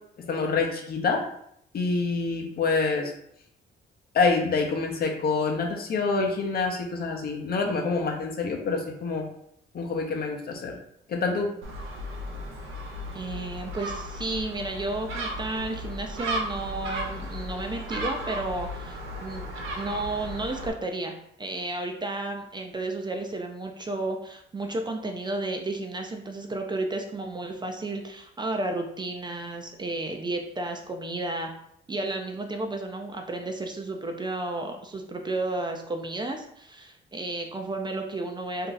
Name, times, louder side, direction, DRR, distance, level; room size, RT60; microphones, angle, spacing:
voice 1, 0.3-1.2 1.7-3.1 4.1-9.2 9.7-10.8 11.1-11.5, left 4 dB, 50° left, 2 dB, 0.7 m, -26 dB
Gull seagull, 11.6-20.7, equal, 85° right, 0.7 m, -35 dB
voice 2, 13.1-19.5 19.8-21.1 21.4-31.5 31.9-38.7, right 2 dB, 20° right, 4 dB, 0.4 m, -32 dB
2.7 x 2.3 x 3.8 m, 0.71 s
cardioid pair, 90°, 20 cm